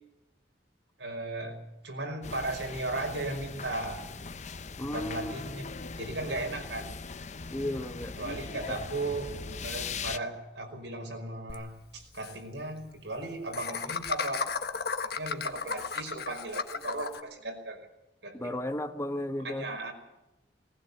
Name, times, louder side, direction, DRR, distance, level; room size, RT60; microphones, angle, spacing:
voice 1, 1.0-1.6 1.8-4.0 4.9-5.6 6.0-6.9 8.2-9.3 9.6-14.7 15.0-17.8 18.2-18.6 19.4-19.9, right 2 dB, 85° right, 3 dB, 5.4 m, -36 dB
sound 1, 2.2-10.2, left 4 dB, 40° left, 0.8 m, -40 dB
voice 2, 4.8-5.3 7.5-8.2 8.7-8.8 18.3-19.7, left 1 dB, 15° left, 9 dB, 1.1 m, -34 dB
Laughter, 11.5-11.6 11.9-12.0 12.2-12.3 13.5-17.2, left 5 dB, 60° left, 1.6 m, -34 dB
20.0 x 18.5 x 8.2 m, 0.99 s
head